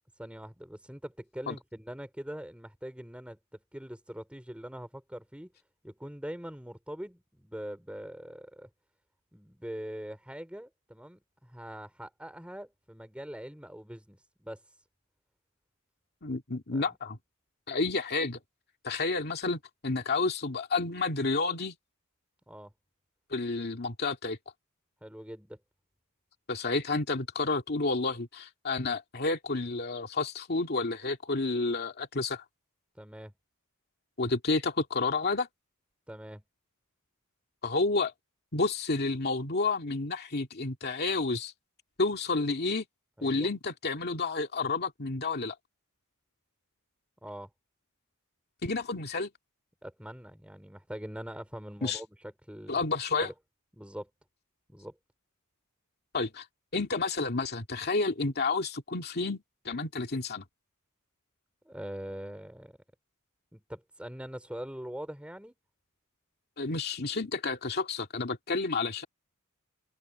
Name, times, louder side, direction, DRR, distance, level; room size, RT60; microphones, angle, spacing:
voice 1, 0.2-5.5 5.8-8.7 9.3-14.8 16.7-16.9 22.5-22.7 25.0-25.6 32.9-33.3 36.1-36.4 43.2-43.5 47.2-47.5 49.8-52.9 53.2-53.3 53.7-54.1 54.7-55.0 61.6-62.8 63.5-65.6, equal, 5° right, 3.9 m, -43 dB
voice 2, 16.2-17.2 17.7-18.4 18.8-21.8 23.3-24.4 26.5-32.4 34.2-35.5 37.6-38.1 38.5-41.5 42.0-42.9 43.2-45.5 48.6-49.3 51.8-52.0 52.7-53.3 56.1-56.5 56.7-60.4 66.6-69.1, left 3 dB, 50° left, 2.3 m, -30 dB
open air
head